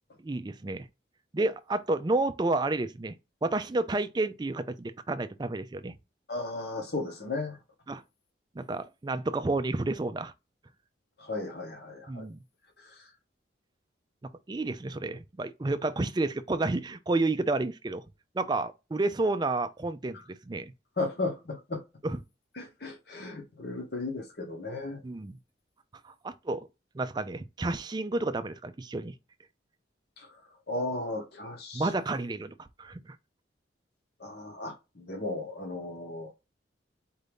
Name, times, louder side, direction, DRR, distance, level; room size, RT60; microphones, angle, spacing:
voice 1, 0.2-0.9 1.3-6.0 7.9-8.0 8.6-10.3 12.1-12.4 14.2-18.0 18.3-20.7 22.0-22.2 25.0-25.4 26.0-26.7 26.9-29.2 31.7-33.2, right 2 dB, 25° right, 0.3 m, -30 dB
voice 2, 6.3-7.6 11.2-12.2 12.8-13.1 21.0-21.8 22.6-25.0 30.2-30.3 30.7-31.9 34.2-36.3, left 2 dB, 60° left, 1.0 m, -35 dB
4.5 x 2.6 x 3.4 m
head